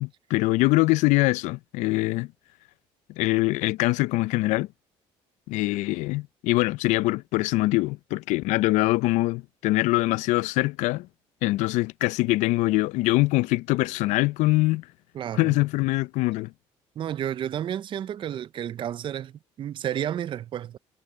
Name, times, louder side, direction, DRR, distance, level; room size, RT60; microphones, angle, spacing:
voice 1, 0.0-2.3 3.2-4.7 5.5-11.1 11.4-14.8 15.4-16.5, left 20 dB, 80° left, 0.4 m, -23 dB
voice 2, 15.1-15.5 17.0-20.8, right 10 dB, 45° right, 0.5 m, -31 dB
cardioid pair, 100°, 12 cm